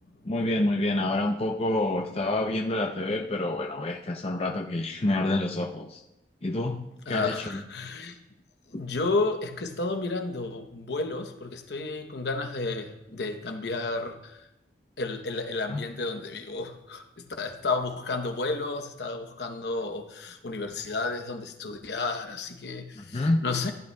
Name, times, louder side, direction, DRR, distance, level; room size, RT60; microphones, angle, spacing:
voice 1, 0.2-6.0 6.4-6.8 7.1-7.6 8.7-8.8 15.7-15.8 22.9-23.4, left 2 dB, 35° left, 2 dB, 0.5 m, -28 dB
voice 2, 7.1-8.2 8.7-14.4 15.0-23.7, left 3 dB, 65° left, 6 dB, 0.9 m, -32 dB
15.0 x 11.0 x 2.3 m, 0.89 s
head